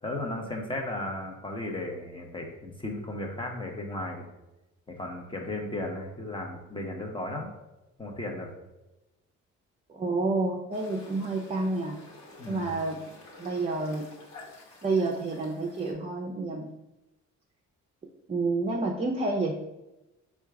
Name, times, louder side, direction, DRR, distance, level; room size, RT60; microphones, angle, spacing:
voice 1, 0.0-4.2 4.9-7.5 8.0-8.5 12.4-12.7, left 1 dB, 15° left, 1 dB, 0.9 m, -35 dB
voice 2, 9.9-12.0 12.5-13.0 13.4-14.1 14.8-16.7 18.3-19.5, right 3 dB, 20° right, 0 dB, 0.5 m, -29 dB
sound 1, 10.7-15.9, left 2 dB, 65° left, 1.2 m, -50 dB
4.4 x 2.4 x 4.6 m, 0.98 s
cardioid pair, 90°, 30 cm